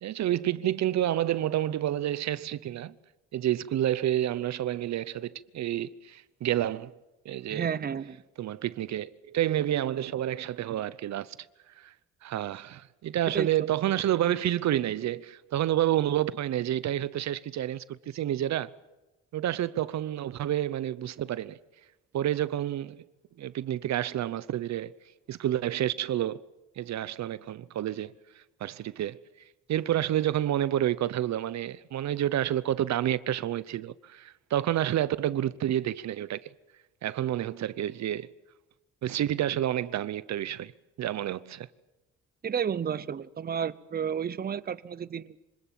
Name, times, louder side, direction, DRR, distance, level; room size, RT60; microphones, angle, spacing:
voice 1, 0.0-2.9 3.3-6.9 7.2-7.7 8.4-11.4 11.8-11.9 12.2-18.7 19.3-21.6 22.1-23.0 23.4-24.9 25.3-26.4 26.8-29.2 29.7-36.5 37.0-38.3 39.0-40.7 41.0-41.7, right 12 dB, 65° right, 0.8 m, -29 dB
voice 2, 7.5-8.2 13.3-13.5 42.4-45.4, right 7 dB, 30° right, 0.7 m, -31 dB
25.5 x 19.5 x 7.5 m
cardioid pair, 90°, 30 cm